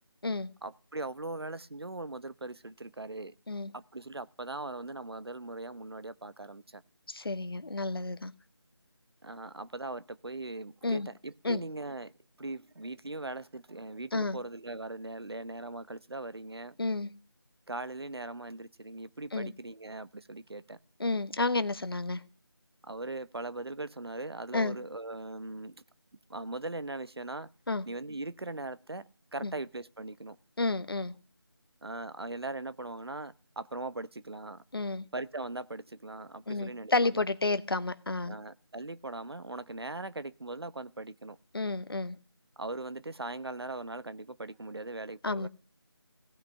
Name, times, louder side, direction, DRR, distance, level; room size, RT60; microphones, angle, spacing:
voice 1, 0.6-3.3 3.7-6.8 9.2-12.1 12.4-16.8 17.7-20.8 22.8-25.8 26.3-27.5 27.9-29.0 29.3-30.4 31.8-34.6 35.1-37.3 38.2-41.4 42.6-45.5, right 2 dB, 70° right, 15 dB, 0.9 m, -40 dB
voice 2, 7.1-8.3 10.8-11.1 11.4-11.6 14.1-14.4 16.8-17.1 19.3-19.5 21.0-22.2 24.5-24.8 27.7-27.8 29.4-29.5 30.6-31.1 34.7-35.1 36.5-38.3 41.5-42.2 45.2-45.5, left 3 dB, 60° left, 13 dB, 1.0 m, -31 dB
16.5 x 6.0 x 9.7 m, 0.37 s
figure-of-eight pair, 165°, 14 cm